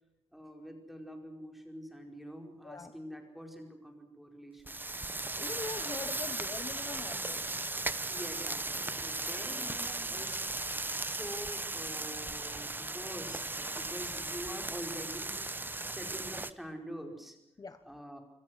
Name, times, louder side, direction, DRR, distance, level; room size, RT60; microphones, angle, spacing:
voice 1, 0.3-5.0 8.1-10.5 11.0-17.4 17.8-18.2, equal, ahead, 3 dB, 5.0 m, -46 dB
sound 1, 4.6-16.5, right 2 dB, 20° right, 1.0 m, -37 dB
voice 2, 5.3-7.5 17.6-17.8, left 4 dB, 35° left, 10 dB, 1.1 m, -42 dB
28.0 x 24.0 x 6.4 m, 0.85 s
wide cardioid pair, 160°, 11 cm